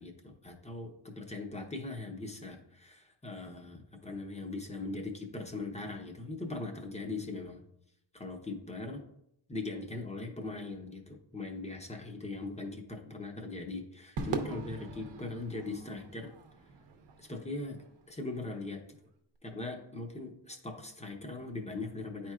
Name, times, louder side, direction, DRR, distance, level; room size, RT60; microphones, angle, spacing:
voice 1, 0.0-7.6 8.1-9.0 9.5-16.3 17.2-17.8 18.1-18.8 19.4-22.3, left 2 dB, 15° left, 3 dB, 0.8 m, -40 dB
Crowd / Fireworks, 14.2-18.6, right 4 dB, 65° right, 0.8 m, -42 dB
10.0 x 4.4 x 2.4 m, 0.78 s
cardioid pair, 130°, 46 cm